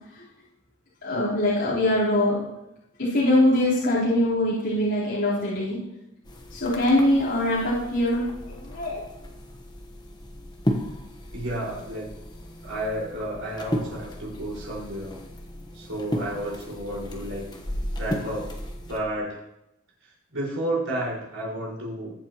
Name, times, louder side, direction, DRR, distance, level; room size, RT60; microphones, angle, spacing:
voice 1, 1.0-2.4 3.0-5.8 6.5-9.0, left 1 dB, 55° left, -12 dB, 4.3 m, -23 dB
sound 1, 6.3-19.0, equal, 20° left, 1.3 m, -35 dB
voice 2, 11.3-12.1 12.6-15.2 15.7-17.5 18.0-18.5 18.9-19.4 20.0-22.1, right 1 dB, 70° right, -5 dB, 5.4 m, -31 dB
22.0 x 7.8 x 3.1 m, 0.88 s
head